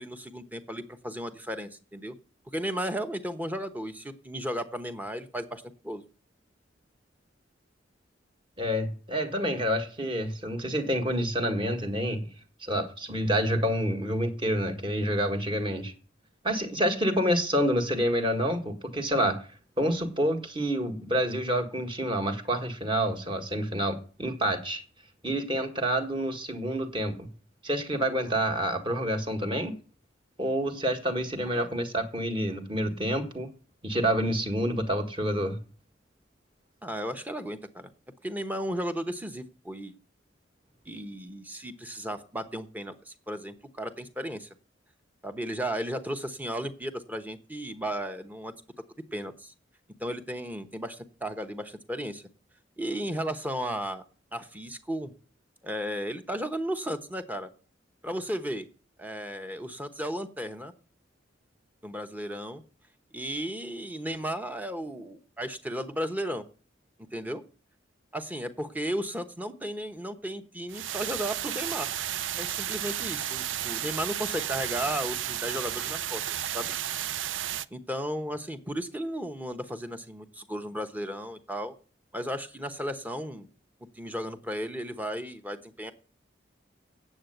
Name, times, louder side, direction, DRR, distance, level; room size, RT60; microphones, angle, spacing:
voice 1, 0.0-2.2 2.5-6.0 31.5-31.7 36.8-37.9 38.2-39.9 40.9-44.5 45.2-48.5 49.1-49.5 50.0-52.3 52.8-54.0 54.3-55.1 55.6-57.5 58.0-58.6 59.0-60.7 61.8-62.6 63.1-66.4 67.1-67.4 68.1-71.9 72.3-76.7 77.7-81.7 82.1-83.5 83.9-85.9, equal, 10° right, 1.0 m, -34 dB
voice 2, 8.6-12.3 12.6-15.9 16.4-19.5 19.8-24.8 25.2-27.3 27.6-29.7 30.4-33.5 33.8-35.6, equal, 25° right, 1.6 m, -28 dB
sound 1, 70.7-77.7, right 11 dB, 80° right, 0.5 m, -33 dB
8.7 x 7.8 x 7.9 m
head